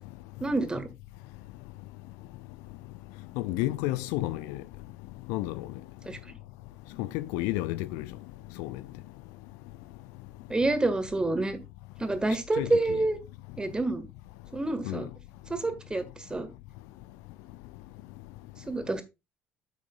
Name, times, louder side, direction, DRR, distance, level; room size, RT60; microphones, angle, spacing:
voice 1, 0.4-0.9 6.0-6.2 10.5-11.6 12.0-13.2 13.6-14.1 14.5-15.1 15.5-16.0 16.3-16.5 18.7-19.0, right 2 dB, 15° right, 1.6 m, -28 dB
voice 2, 3.4-4.6 5.3-5.7 7.0-8.1 8.6-8.7 12.6-12.7 14.9-15.0, left 17 dB, 60° left, 0.4 m, -30 dB
9.2 x 7.4 x 2.3 m
figure-of-eight pair, 55°, 6 cm